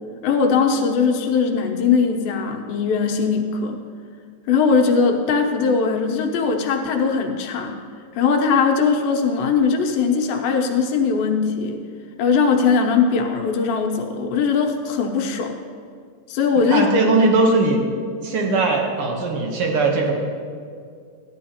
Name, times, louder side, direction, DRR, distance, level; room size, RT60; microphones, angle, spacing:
voice 1, 0.2-3.8 4.5-7.7 8.1-11.8 12.2-15.5 16.3-16.8, left 5 dB, 85° left, 3 dB, 2.7 m, -20 dB
voice 2, 16.7-17.8 18.2-20.1, right 3 dB, 85° right, 1 dB, 1.2 m, -19 dB
14.5 x 11.0 x 2.9 m, 2.2 s
omnidirectional pair, 4.1 m